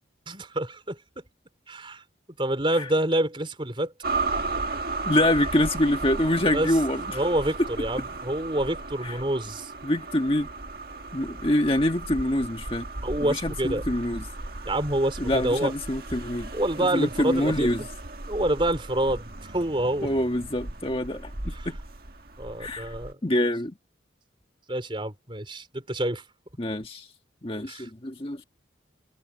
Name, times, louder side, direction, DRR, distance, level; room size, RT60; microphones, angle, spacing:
voice 1, 0.3-1.2 1.7-2.0 2.4-3.9 6.5-6.7 7.1-9.7 13.0-13.8 14.7-15.7 16.5-17.7 18.3-20.1 21.5-21.7 22.4-23.2 24.7-26.2 27.7-27.9, right 1 dB, 25° right, 4.0 m, -27 dB
sound 1, 4.0-23.1, right 3 dB, 50° right, 1.8 m, -35 dB
voice 2, 5.0-7.3 9.0-9.2 9.8-10.5 11.1-12.9 13.2-14.2 15.2-16.5 16.8-17.8 20.0-21.8 22.6-22.9 23.2-23.7 26.6-27.1 27.4-28.4, left 1 dB, 30° left, 1.7 m, -25 dB
head